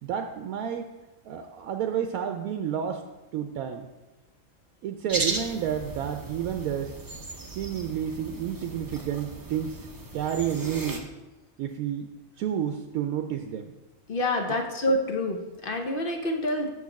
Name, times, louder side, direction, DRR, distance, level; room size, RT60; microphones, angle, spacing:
voice 1, 0.0-0.9 1.2-3.0 3.3-3.9 4.8-7.0 7.6-9.9 10.1-11.1 11.6-12.1 12.4-13.7 14.5-14.6, right 9 dB, 85° right, 5 dB, 1.0 m, -30 dB
sound 1, 5.1-11.0, right 3 dB, 25° right, 0.4 m, -36 dB
voice 2, 14.1-16.7, left 1 dB, 45° left, 3 dB, 0.8 m, -27 dB
6.8 x 4.8 x 5.8 m, 1.1 s
omnidirectional pair, 1.5 m